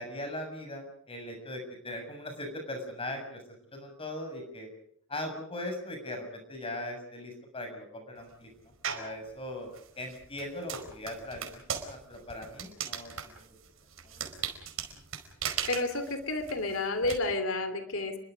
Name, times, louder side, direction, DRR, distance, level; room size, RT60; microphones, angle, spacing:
voice 1, 0.0-3.4 3.7-4.7 5.1-8.5 9.0-9.7 10.0-13.4 14.1-14.3, left 1 dB, 25° left, 5 dB, 6.9 m, -39 dB
sound 1, 8.8-9.2 9.7-17.1, right 8 dB, 80° right, 4.8 m, -38 dB
voice 2, 15.7-18.2, left 2 dB, 80° left, 10 dB, 2.9 m, -30 dB
29.5 x 23.0 x 5.2 m, 0.65 s
head